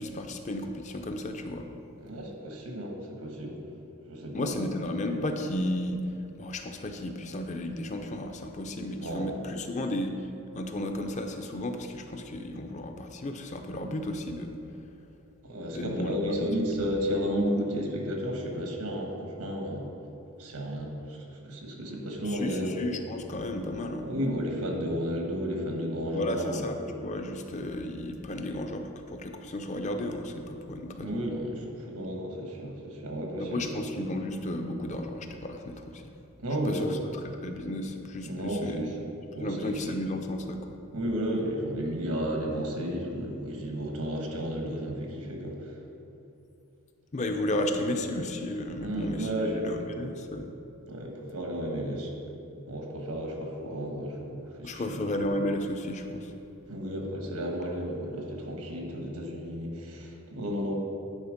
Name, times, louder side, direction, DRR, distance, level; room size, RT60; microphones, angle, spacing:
voice 1, 0.0-1.7 4.3-10.3 10.5-14.5 15.7-16.5 22.2-24.1 26.1-31.2 33.4-36.1 36.6-38.8 39.4-40.8 47.1-50.5 54.6-56.3, left 1 dB, 30° left, 5 dB, 0.5 m, -33 dB
voice 2, 2.0-3.6 4.1-4.5 9.0-9.4 15.4-19.9 20.4-22.8 24.0-26.7 31.0-33.7 36.4-37.0 38.2-38.9 39.3-39.9 40.9-45.6 48.8-50.1 50.9-52.1 52.7-55.1 56.7-60.7, equal, 85° right, 1 dB, 1.3 m, -33 dB
9.6 x 4.3 x 5.1 m, 2.8 s
head